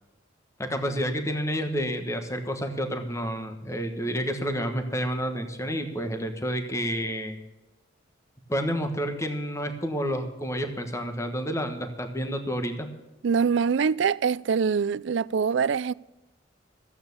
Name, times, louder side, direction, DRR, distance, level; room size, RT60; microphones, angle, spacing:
voice 1, 0.6-7.4 8.5-12.9, equal, 15° left, 1.2 m, -29 dB
voice 2, 13.2-15.9, right 6 dB, 65° right, 0.4 m, -24 dB
15.0 x 8.8 x 6.9 m
head